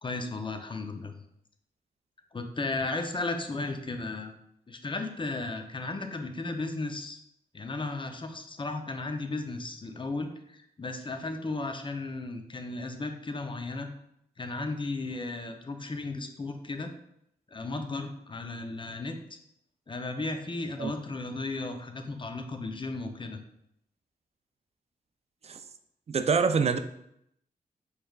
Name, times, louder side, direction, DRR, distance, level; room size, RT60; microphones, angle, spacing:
voice 1, 0.0-1.1 2.3-4.3 4.7-7.2 7.5-13.9 14.4-16.9 17.5-19.2 19.9-23.4, left 3 dB, 30° left, 6 dB, 0.6 m, -35 dB
voice 2, 26.1-26.8, right 5 dB, 40° right, 10 dB, 0.4 m, -25 dB
4.4 x 3.3 x 2.3 m, 0.76 s
cardioid pair, 50°, 17 cm